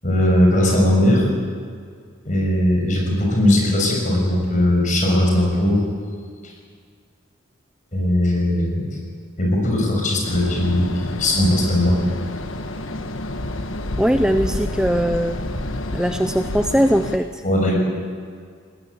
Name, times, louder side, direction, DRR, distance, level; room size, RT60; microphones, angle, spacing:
voice 1, 0.0-1.3 2.2-5.8 7.9-8.8 9.4-12.0 17.4-17.7, left 1 dB, 35° left, -1 dB, 6.6 m, -18 dB
sound 1, 10.2-17.2, left 1 dB, 65° left, 1.3 m, -29 dB
voice 2, 14.0-15.4 15.9-17.4, equal, 5° right, 8 dB, 0.5 m, -20 dB
20.5 x 19.5 x 8.5 m, 2.1 s
head